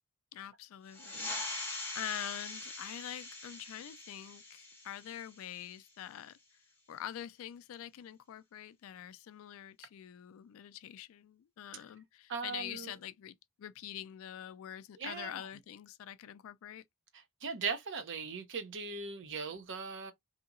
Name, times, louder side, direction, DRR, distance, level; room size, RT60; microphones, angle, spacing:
voice 1, 0.3-6.4 6.9-16.8, left 11 dB, 65° left, 0.3 m, -45 dB
sound 1, 0.9-6.0, left 2 dB, 10° left, 1.0 m, -43 dB
voice 2, 12.3-12.9 15.0-15.5 17.1-20.1, right 5 dB, 55° right, 0.7 m, -39 dB
2.8 x 2.8 x 2.4 m
head